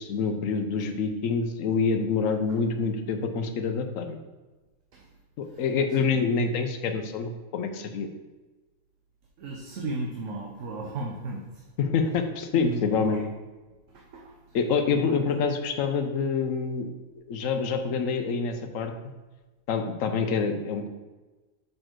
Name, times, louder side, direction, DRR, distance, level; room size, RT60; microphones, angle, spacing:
voice 1, 0.0-4.2 5.4-8.1 11.8-13.2 14.5-16.9 17.1-18.9 19.7-20.9, left 5 dB, 80° left, 7 dB, 1.1 m, -26 dB
voice 2, 9.4-11.6 12.5-13.2 13.9-14.6 14.9-15.3, right 2 dB, 75° right, 0 dB, 1.2 m, -36 dB
6.4 x 4.4 x 4.5 m, 1.2 s
omnidirectional pair, 1.3 m